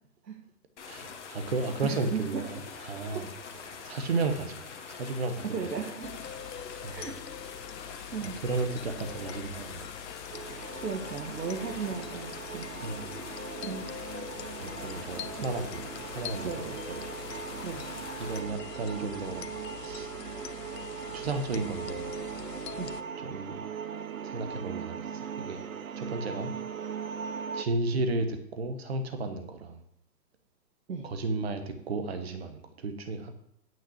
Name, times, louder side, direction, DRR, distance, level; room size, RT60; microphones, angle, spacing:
sound 1, 0.8-18.4, left 5 dB, 45° left, 1.4 m, -45 dB
voice 1, 0.9-3.3 3.8-5.7 6.8-7.1 8.2-9.8 12.8-13.2 14.6-15.8 16.1-17.0 18.2-19.4 19.8-20.1 21.1-22.1 23.2-23.6 24.2-25.6 26.0-26.5 27.5-29.8 31.0-33.3, right 3 dB, 40° right, 7 dB, 1.0 m, -33 dB
voice 2, 1.8-2.4 5.4-6.1 6.9-7.2 8.1-8.4 10.8-12.7 13.6-13.8 16.4-16.8 17.5-17.9 22.8-22.9 30.9-31.0, right 5 dB, 75° right, 1 dB, 1.8 m, -35 dB
sound 2, 6.0-23.0, left 9 dB, 75° left, 0.8 m, -44 dB
sound 3, 10.3-27.7, right 7 dB, 55° right, 0.6 m, -40 dB
9.1 x 5.6 x 7.1 m, 0.77 s
hypercardioid pair, 175°, 49 cm